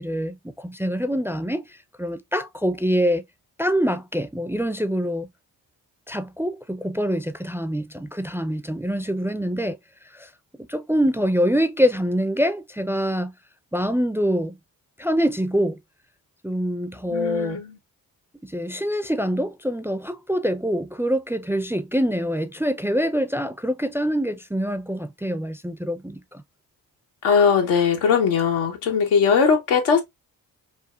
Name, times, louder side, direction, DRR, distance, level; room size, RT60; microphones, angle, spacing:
voice 1, 0.0-1.6 2.0-3.2 3.6-5.3 6.1-9.8 10.1-10.3 10.7-13.3 13.7-14.6 15.0-15.8 16.4-17.6 18.4-26.4, equal, 5° right, 0.4 m, -25 dB
voice 2, 17.0-17.8 27.2-30.0, left 6 dB, 85° left, 1.2 m, -20 dB
5.0 x 2.4 x 2.4 m
hypercardioid pair, 45°, 46 cm